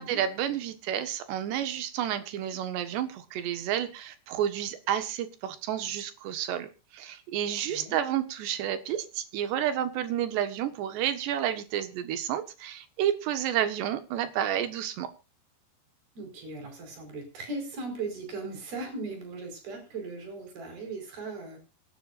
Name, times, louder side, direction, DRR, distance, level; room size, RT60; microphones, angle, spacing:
voice 1, 0.0-15.1, right 10 dB, 75° right, 10 dB, 3.6 m, -30 dB
voice 2, 7.7-8.0 16.2-21.6, right 3 dB, 55° right, 5 dB, 6.4 m, -38 dB
26.5 x 10.0 x 2.5 m, 0.30 s
omnidirectional pair, 5.1 m